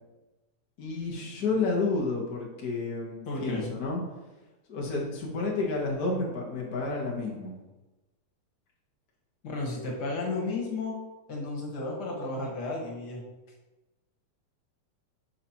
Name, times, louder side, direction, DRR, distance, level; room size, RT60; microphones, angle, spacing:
voice 1, 0.8-4.0 4.7-7.5, left 3 dB, 70° left, -2 dB, 0.8 m, -30 dB
voice 2, 3.3-3.7 9.4-10.9 11.3-13.2, left 2 dB, 45° left, -2 dB, 1.7 m, -33 dB
9.5 x 5.6 x 2.9 m, 1.1 s
omnidirectional pair, 3.3 m